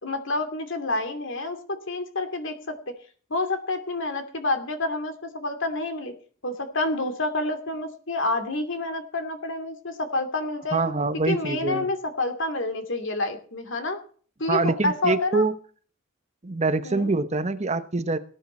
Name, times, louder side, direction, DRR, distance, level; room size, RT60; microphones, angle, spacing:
voice 1, 0.0-2.8 3.3-6.1 6.4-10.8 11.3-14.0 14.4-15.4 16.8-17.1, left 2 dB, 60° left, 7 dB, 2.6 m, -28 dB
voice 2, 10.7-11.9 14.5-15.5 16.4-18.2, right 3 dB, 35° right, 11 dB, 0.9 m, -25 dB
19.0 x 9.7 x 4.3 m, 0.43 s
head